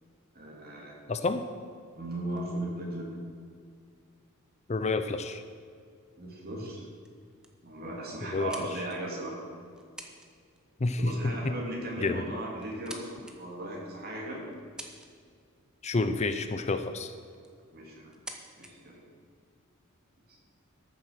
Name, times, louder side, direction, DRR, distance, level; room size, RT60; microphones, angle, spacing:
voice 1, 0.3-0.9 1.9-3.1 6.2-6.8 7.6-9.4 11.0-14.4 17.7-18.1 18.6-19.0, right 1 dB, 45° right, -2 dB, 3.1 m, -37 dB
voice 2, 1.1-1.4 4.7-5.4 8.3-8.5 10.8-11.5 12.0-12.2 15.8-17.1, left 3 dB, 30° left, 9 dB, 0.5 m, -29 dB
sound 1, 1.3-3.9 4.8-4.9 5.2-5.5 6.1-6.4 6.6-6.7 7.0-7.6 8.1-9.2 9.7-10.3 10.6-10.8 11.9-12.0 12.5-13.3 13.9-14.0 14.5-15.4 16.7-16.8 17.2-17.6 18.1-18.7, right 1 dB, 5° right, 1.0 m, -49 dB
13.5 x 7.6 x 6.8 m, 2.2 s
head